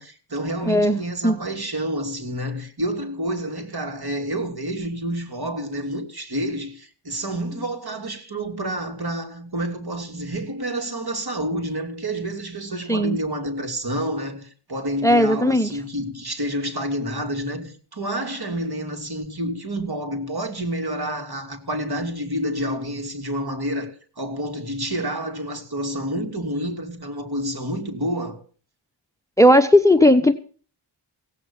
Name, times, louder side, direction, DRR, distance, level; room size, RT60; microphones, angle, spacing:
voice 1, 0.0-28.4, right 1 dB, 50° right, 2.9 m, -29 dB
voice 2, 0.7-1.4 12.9-13.2 15.0-15.7 29.4-30.3, left 1 dB, 5° left, 0.9 m, -16 dB
16.5 x 8.5 x 7.2 m
wide cardioid pair, 70°, 49 cm